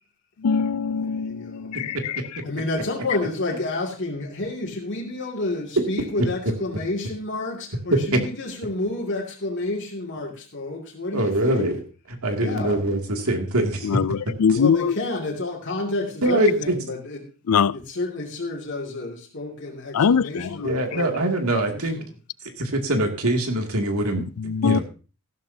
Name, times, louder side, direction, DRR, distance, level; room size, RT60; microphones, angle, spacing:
voice 1, 0.4-2.2 13.8-14.9 17.5-17.8 19.9-20.7 24.4-24.8, left 6 dB, 90° left, 0.5 m, -22 dB
voice 2, 1.0-1.8 2.4-11.7 12.4-12.8 14.5-17.3 17.7-21.1 21.6-22.1, left 2 dB, 55° left, 2.5 m, -30 dB
voice 3, 11.1-11.8 12.2-14.0 14.5-14.6 16.2-16.7 20.6-22.0 22.6-24.8, right 1 dB, 80° right, 2.5 m, -23 dB
15.0 x 12.5 x 2.8 m
head